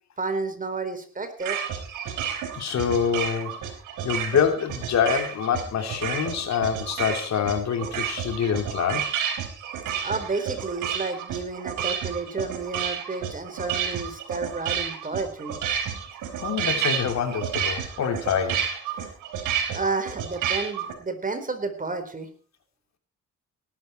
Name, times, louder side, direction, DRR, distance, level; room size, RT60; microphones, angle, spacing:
voice 1, 0.2-1.6 10.0-15.6 19.7-22.3, right 3 dB, 25° right, 8 dB, 4.4 m, -31 dB
sound 1, 1.4-20.9, right 8 dB, 85° right, 4.6 m, -30 dB
voice 2, 2.5-3.6 4.0-9.1 16.4-18.6, left 7 dB, 65° left, 7 dB, 3.1 m, -26 dB
18.5 x 12.5 x 4.5 m, 0.41 s
cardioid pair, 90°, 30 cm